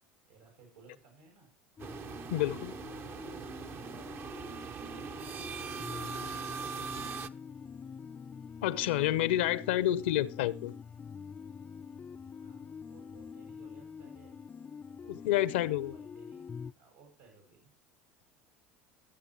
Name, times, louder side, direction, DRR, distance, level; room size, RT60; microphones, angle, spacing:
voice 1, 0.3-1.5 2.7-4.0 4.8-7.0 12.4-12.6 12.9-14.4 14.8-15.2 15.8-16.5 16.8-17.7, right 4 dB, 80° right, 7.2 m, -59 dB
sound 1, 1.8-16.7, left 6 dB, 25° left, 0.5 m, -46 dB
sound 2, 1.8-7.3, right 6 dB, 40° right, 0.9 m, -41 dB
voice 2, 2.3-2.8 8.6-10.8 15.1-15.9, left 13 dB, 70° left, 0.8 m, -29 dB
21.0 x 7.8 x 3.0 m
hypercardioid pair, 70°, 6 cm